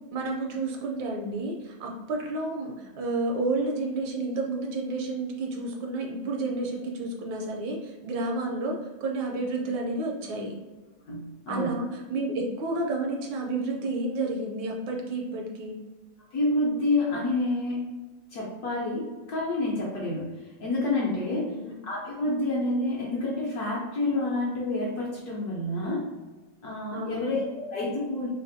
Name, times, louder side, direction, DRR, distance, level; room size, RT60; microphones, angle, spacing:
voice 1, 0.0-10.5 11.5-15.8 26.9-27.3, right 2 dB, 75° right, 0 dB, 1.3 m, -30 dB
voice 2, 11.1-11.8 16.3-17.8 18.3-21.6 21.8-26.1 26.6-28.3, left 2 dB, 65° left, -4 dB, 1.0 m, -28 dB
3.3 x 2.9 x 2.6 m, 1.2 s
omnidirectional pair, 2.2 m